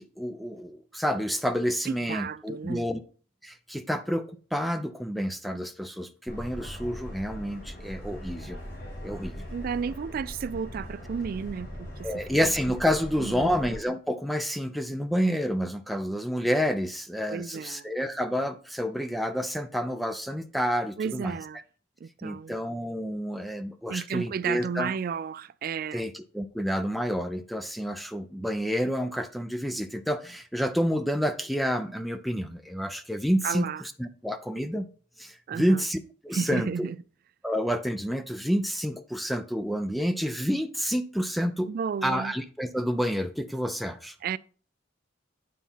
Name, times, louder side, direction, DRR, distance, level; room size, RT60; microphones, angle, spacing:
voice 1, 0.0-3.0 3.4-8.6 9.0-9.3 12.0-21.4 22.2-24.9 25.9-33.7 34.0-34.9 35.2-36.9 37.4-41.7 42.0-44.1, equal, ahead, 0.5 m, -29 dB
voice 2, 1.9-2.9 9.5-12.2 13.2-13.5 17.3-17.9 21.0-21.6 22.0-22.7 23.9-26.1 33.4-33.8 35.5-35.8 36.3-37.0 41.7-42.3 44.2-44.4, right 6 dB, 50° right, 0.3 m, -33 dB
Subway metro underground, 6.3-13.8, equal, 60° left, 5.0 m, -40 dB
9.2 x 4.2 x 5.6 m
head